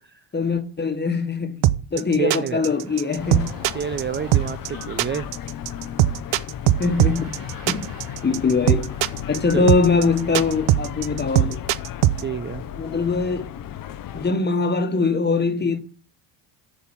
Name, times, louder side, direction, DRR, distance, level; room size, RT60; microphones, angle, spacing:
voice 1, 0.3-1.6 1.9-3.5 4.7-4.9 6.8-7.8 8.2-8.9 9.3-11.6 12.8-13.5 14.1-15.8, left 4 dB, 20° left, 1.4 m, -22 dB
sound 1, 1.6-12.2, right 14 dB, 65° right, 0.8 m, -20 dB
voice 2, 2.1-2.7 3.7-4.6 4.9-5.3 9.5-9.7 12.2-12.6, right 7 dB, 25° right, 0.5 m, -28 dB
sound 2, 2.4-10.7, right 6 dB, 85° right, 4.5 m, -48 dB
sound 3, 3.2-14.3, left 10 dB, 45° left, 0.8 m, -35 dB
9.8 x 5.8 x 7.1 m
supercardioid pair, 95°, 48 cm